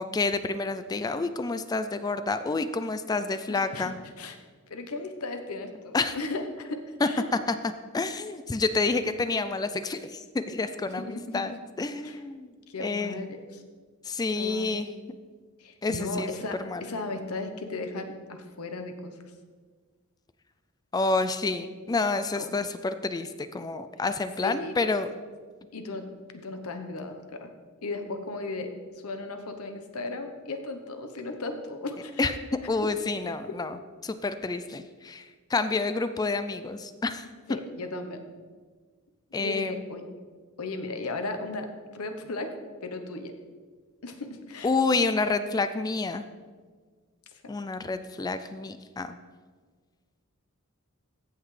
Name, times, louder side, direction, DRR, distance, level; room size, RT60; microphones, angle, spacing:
voice 1, 0.0-4.0 5.9-6.1 7.0-7.1 7.5-7.6 7.9-12.5 12.8-13.2 14.0-14.9 15.8-16.9 20.9-25.1 32.2-37.6 39.3-39.7 44.6-46.2 47.5-49.2, left 3 dB, 20° left, 11 dB, 0.3 m, -29 dB
voice 2, 3.5-3.9 4.2-4.4 4.7-7.2 10.9-11.6 12.0-12.2 12.7-13.6 14.4-14.7 15.6-19.2 22.3-22.5 24.4-24.7 25.7-26.1 26.3-27.5 27.8-28.7 29.0-32.2 37.5-38.2 39.4-40.0 40.6-41.7 41.9-42.5 42.8-43.3 44.0-44.7, left 2 dB, 85° left, 6 dB, 0.9 m, -36 dB
15.0 x 5.8 x 3.2 m, 1.5 s
head